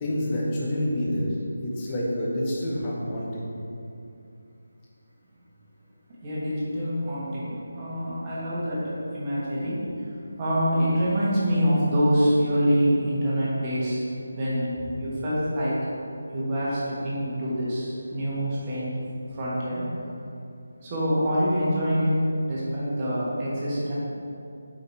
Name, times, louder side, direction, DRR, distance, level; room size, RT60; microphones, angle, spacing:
voice 1, 0.0-3.3, left 1 dB, 20° left, -5 dB, 0.9 m, -27 dB
voice 2, 6.2-14.0 14.3-15.7 16.3-19.0 19.3-20.1 20.8-23.9, equal, 20° right, -8 dB, 1.3 m, -26 dB
6.2 x 5.0 x 3.3 m, 2.6 s
figure-of-eight pair, 155°, 0 cm